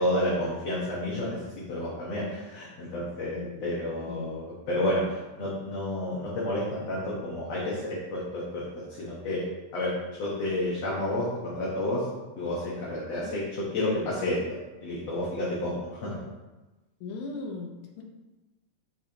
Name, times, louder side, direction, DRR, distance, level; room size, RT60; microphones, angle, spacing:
voice 1, 0.0-8.6 9.0-9.4 9.7-9.9 10.2-12.1 12.4-14.4 14.8-16.1, left 1 dB, 55° left, -7 dB, 2.2 m, -30 dB
voice 2, 17.0-18.0, left 3 dB, 85° left, 1 dB, 2.8 m, -37 dB
12.5 x 4.5 x 3.0 m, 1.1 s
omnidirectional pair, 4.1 m